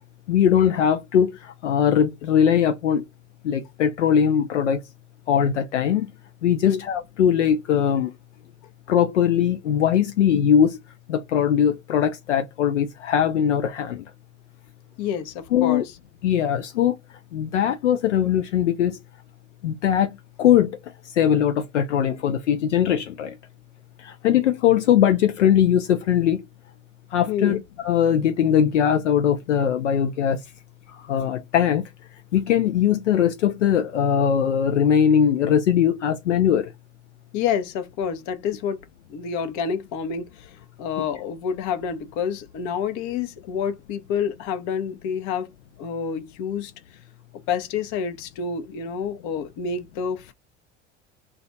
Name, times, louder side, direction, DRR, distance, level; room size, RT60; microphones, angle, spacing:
voice 1, 0.3-1.3 1.6-3.0 3.4-4.8 5.3-6.1 6.4-8.1 8.9-10.8 11.1-14.0 15.5-15.8 16.2-17.0 17.3-19.0 19.6-20.1 20.4-20.8 21.2-23.3 24.0-26.4 27.1-30.4 31.1-31.8 32.3-36.7, left 9 dB, 85° left, 0.5 m, -20 dB
voice 2, 15.0-15.8 27.3-27.6 37.3-38.8 39.1-45.5 45.8-46.7 47.5-50.3, left 7 dB, 55° left, 0.8 m, -28 dB
2.4 x 2.2 x 3.9 m
figure-of-eight pair, 70°, 35 cm